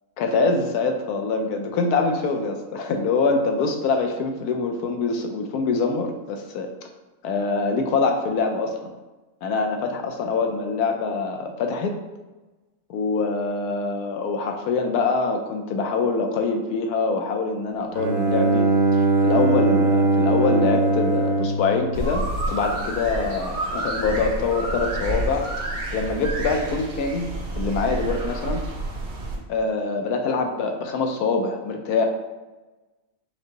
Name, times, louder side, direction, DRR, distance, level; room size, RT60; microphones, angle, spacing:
voice 1, 0.2-6.7 7.2-8.9 9.4-11.9 12.9-28.6 29.5-32.0, left 4 dB, 85° left, 4 dB, 1.1 m, -24 dB
Bowed string instrument, 17.9-22.8, right 3 dB, 80° right, 1.1 m, -21 dB
sound 1, 21.9-29.4, right 2 dB, 55° right, 1.0 m, -29 dB
5.3 x 2.0 x 3.8 m, 1.1 s
omnidirectional pair, 1.6 m